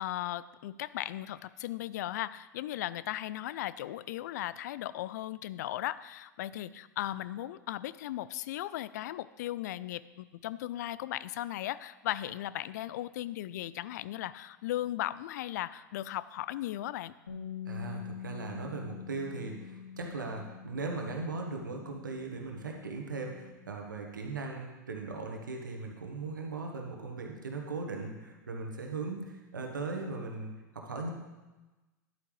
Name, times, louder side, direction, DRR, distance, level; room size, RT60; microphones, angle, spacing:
voice 1, 0.0-17.1, left 14 dB, 65° left, 17 dB, 0.4 m, -37 dB
Bass guitar, 17.3-23.5, left 9 dB, 85° left, 1.9 m, -45 dB
voice 2, 17.6-31.1, right 3 dB, 85° right, 2 dB, 1.4 m, -38 dB
11.5 x 8.2 x 3.3 m, 1.1 s
hypercardioid pair, 90°, 10 cm